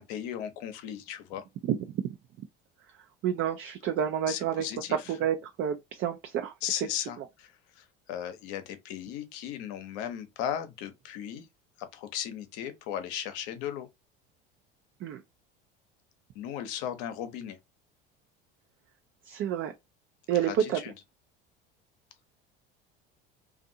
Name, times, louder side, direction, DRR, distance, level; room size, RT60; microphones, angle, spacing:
voice 1, 0.0-1.4 4.3-5.1 6.6-11.5 11.9-13.9 16.3-17.6 20.4-20.9, left 10 dB, 70° left, 0.8 m, -36 dB
voice 2, 3.2-4.7 5.1-6.5 15.0-15.2 19.3-19.7 20.3-20.8, right 9 dB, 45° right, 0.5 m, -29 dB
2.6 x 2.4 x 2.6 m
hypercardioid pair, 80°, 29 cm